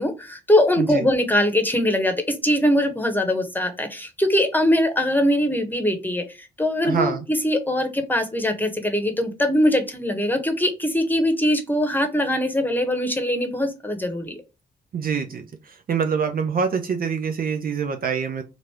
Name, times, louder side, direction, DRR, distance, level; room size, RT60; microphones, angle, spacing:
voice 1, 0.0-14.4, left 1 dB, 10° left, 6 dB, 1.1 m, -22 dB
voice 2, 6.8-7.2 14.9-18.4, right 6 dB, 45° right, 5 dB, 0.6 m, -25 dB
3.1 x 2.6 x 4.3 m, 0.28 s
hypercardioid pair, 40°, 20 cm